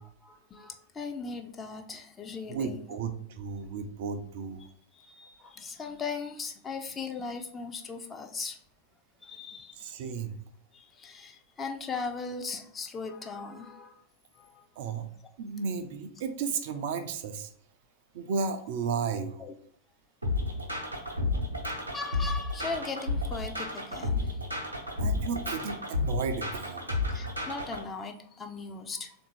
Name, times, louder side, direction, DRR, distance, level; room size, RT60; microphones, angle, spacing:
voice 1, 0.0-2.8 4.9-8.6 9.2-9.9 10.7-13.9 14.4-14.5 19.4-19.5 21.9-24.2 27.1-29.1, left 4 dB, 20° left, 5 dB, 0.5 m, -38 dB
voice 2, 2.5-4.6 9.8-10.3 14.8-15.1 15.4-17.5 18.1-19.4 25.0-26.9, right 5 dB, 55° right, 8 dB, 0.4 m, -33 dB
sound 1, 20.2-27.8, left 2 dB, 85° right, 0.8 m, -31 dB
3.6 x 2.6 x 4.5 m, 0.62 s
figure-of-eight pair, 90°, 0 cm